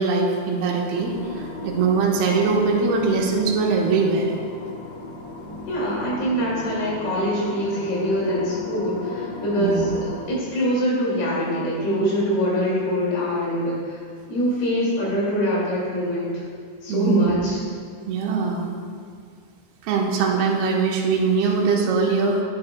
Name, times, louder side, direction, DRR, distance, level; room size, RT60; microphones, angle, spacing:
voice 1, 0.0-4.3 9.6-9.8 16.9-17.4 18.1-18.7 19.8-22.4, right 4 dB, 75° right, -1 dB, 2.6 m, -22 dB
sound 1, 0.9-10.3, left 2 dB, 85° left, 4.0 m, -36 dB
voice 2, 5.7-9.9 10.3-14.0 14.3-16.4 16.8-17.6, equal, 65° left, -5 dB, 4.2 m, -23 dB
11.5 x 9.6 x 2.2 m, 2.1 s
omnidirectional pair, 5.0 m